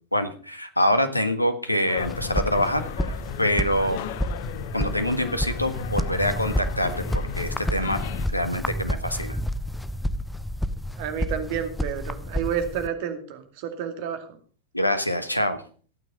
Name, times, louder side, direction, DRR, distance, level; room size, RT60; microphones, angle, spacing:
voice 1, 0.1-4.0 4.7-8.0 8.3-9.4 14.7-15.6, equal, 85° left, 10 dB, 1.6 m, -25 dB
sound 1, 1.9-8.3, left 9 dB, 50° left, 1.1 m, -36 dB
sound 2, 2.0-12.9, equal, 5° left, 0.9 m, -30 dB
voice 2, 11.0-14.4, right 8 dB, 45° right, 8 dB, 2.4 m, -30 dB
15.5 x 9.2 x 5.4 m, 0.42 s
figure-of-eight pair, 90°, 0 cm